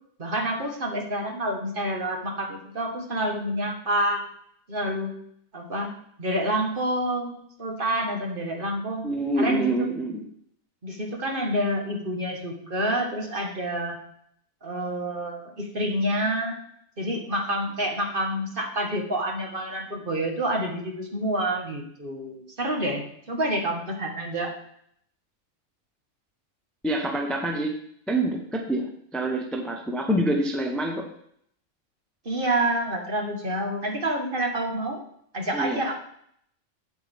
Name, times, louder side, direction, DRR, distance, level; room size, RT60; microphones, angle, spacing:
voice 1, 0.2-4.2 4.7-5.2 5.5-5.9 6.2-7.3 7.6-9.0 9.4-9.8 10.8-14.0 14.6-16.6 17.0-24.5 32.3-35.0 35.3-35.9, right 1 dB, 40° right, 1 dB, 1.6 m, -28 dB
voice 2, 9.0-10.2 26.8-27.8 28.1-31.1 35.5-35.8, right 1 dB, ahead, 2 dB, 0.8 m, -26 dB
8.1 x 8.1 x 3.5 m, 0.67 s
omnidirectional pair, 1.4 m